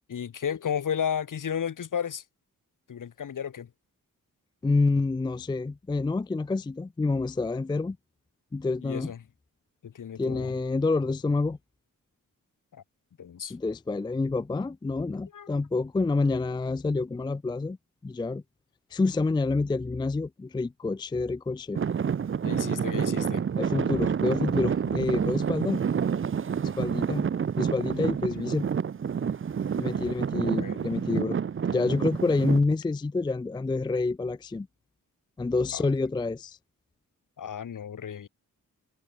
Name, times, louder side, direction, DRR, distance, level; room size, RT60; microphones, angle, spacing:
voice 1, 0.1-2.2 2.9-3.7 8.8-9.2 9.8-10.5 12.7-12.8 13.2-13.5 15.3-15.5 22.4-23.4 30.1-30.2 30.6-31.0 35.7-35.8 37.4-38.3, left 8 dB, 65° left, 2.0 m, -33 dB
voice 2, 4.6-8.0 8.5-9.1 10.2-11.6 13.5-17.8 18.0-18.4 18.9-21.8 23.6-25.8 26.8-27.3 27.6-28.7 29.8-31.4 31.7-34.7 35.4-36.6, left 3 dB, 15° left, 0.4 m, -28 dB
Traffic noise roadway noise / Engine, 21.7-32.6, right 7 dB, 35° right, 0.7 m, -28 dB
wide cardioid pair, 130°, 34 cm